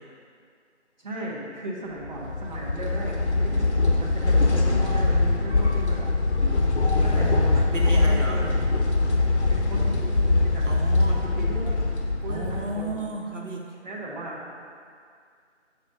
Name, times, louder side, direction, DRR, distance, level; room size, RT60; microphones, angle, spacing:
voice 1, 1.0-6.1 7.0-8.6 9.5-10.6 11.1-11.9 12.2-13.0 13.8-14.4, right 1 dB, 40° right, -6 dB, 1.6 m, -36 dB
sound 1, 2.0-13.1, left 3 dB, 65° left, 1.1 m, -22 dB
voice 2, 7.7-8.4 10.7-11.2 12.3-13.7 14.0-14.1, right 2 dB, 85° right, 0 dB, 1.1 m, -33 dB
6.5 x 5.2 x 6.2 m, 2.2 s
figure-of-eight pair, 170°, 36 cm